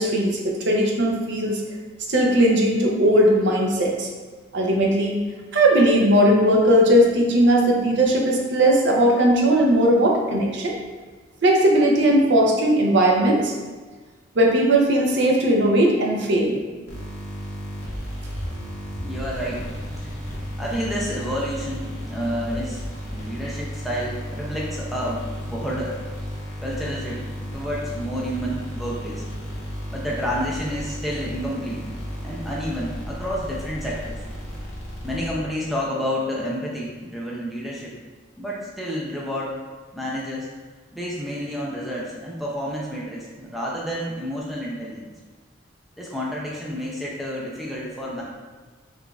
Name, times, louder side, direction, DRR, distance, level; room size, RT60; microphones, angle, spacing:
voice 1, 0.0-1.6 2.1-4.1 4.5-5.2 5.5-10.7 11.4-13.5 14.4-16.6, right 1 dB, 60° right, 0 dB, 0.5 m, -18 dB
sound 1, 16.9-35.7, equal, 55° left, 1.0 m, -34 dB
voice 2, 19.0-19.7 20.0-20.1 20.6-26.0 26.6-27.2 27.5-29.2 29.9-31.9 32.2-34.2 35.0-38.0 38.4-39.6 39.9-40.5 40.9-45.1 46.0-48.2, equal, ahead, -5 dB, 0.4 m, -29 dB
4.9 x 2.5 x 2.3 m, 1.3 s
head